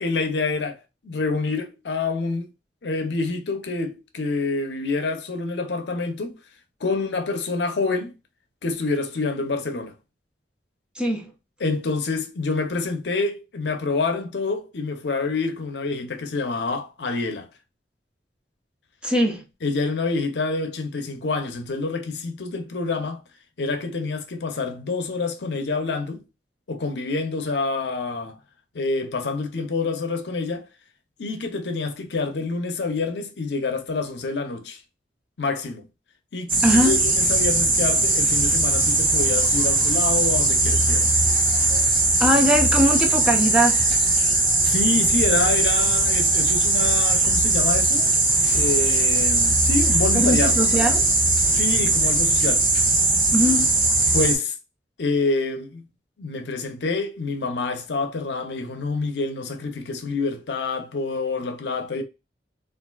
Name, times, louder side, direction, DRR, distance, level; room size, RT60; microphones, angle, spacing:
voice 1, 0.0-0.8 1.0-2.5 2.8-6.4 6.8-8.1 8.6-9.9 11.6-17.5 19.6-23.2 23.6-26.2 26.7-28.4 28.7-30.7 31.2-34.8 35.4-35.9 36.3-41.2 44.6-48.1 48.5-50.6 51.5-52.7 54.1-54.5 55.0-55.9 56.2-62.0, left 3 dB, 70° left, 0.6 m, -27 dB
voice 2, 11.0-11.3 19.0-19.4 36.6-37.0 42.2-43.9 50.1-51.1 53.3-53.8, equal, 5° right, 0.6 m, -21 dB
sound 1, 36.5-54.4, right 2 dB, 30° right, 1.2 m, -20 dB
3.5 x 2.5 x 2.2 m
head